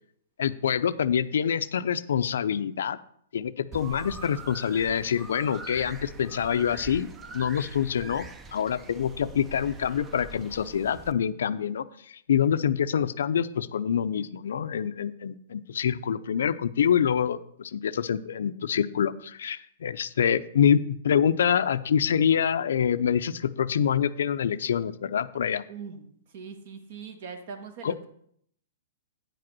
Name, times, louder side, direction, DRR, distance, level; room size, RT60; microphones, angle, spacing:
voice 1, 0.4-3.0 3.3-25.6 27.8-27.9, left 8 dB, 80° left, 14 dB, 0.5 m, -26 dB
sound 1, 3.7-11.1, right 4 dB, 15° right, 0.5 m, -44 dB
voice 2, 25.7-26.0 26.3-28.1, right 6 dB, 55° right, 8 dB, 1.3 m, -41 dB
9.0 x 4.9 x 6.1 m, 0.67 s
hypercardioid pair, 155°, 0 cm